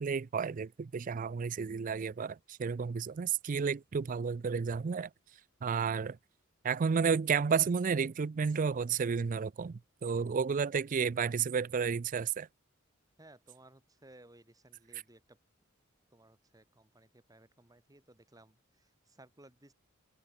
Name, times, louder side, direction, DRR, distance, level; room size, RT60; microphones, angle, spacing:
voice 1, 0.0-5.1 5.6-6.2 6.6-12.5, right 6 dB, 40° right, 0.4 m, -32 dB
voice 2, 13.2-15.4 16.1-19.7, right 1 dB, 15° right, 3.0 m, -59 dB
head